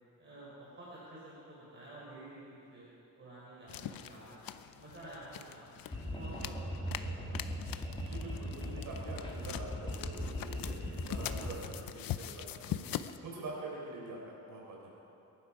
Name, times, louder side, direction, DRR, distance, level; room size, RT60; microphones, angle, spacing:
voice 1, 0.2-2.4 2.7-2.8 3.2-5.8 6.2-7.4 7.7-7.8, right 1 dB, 35° right, -7 dB, 3.9 m, -50 dB
sound 1, 3.7-13.2, left 11 dB, 85° left, 0.7 m, -43 dB
sound 2, 5.9-11.6, equal, 15° left, 2.3 m, -39 dB
voice 2, 7.9-12.8 13.2-14.2 14.5-14.9, right 2 dB, 70° right, -3 dB, 4.0 m, -45 dB
22.5 x 11.5 x 4.9 m, 2.7 s
cardioid pair, 140°, 34 cm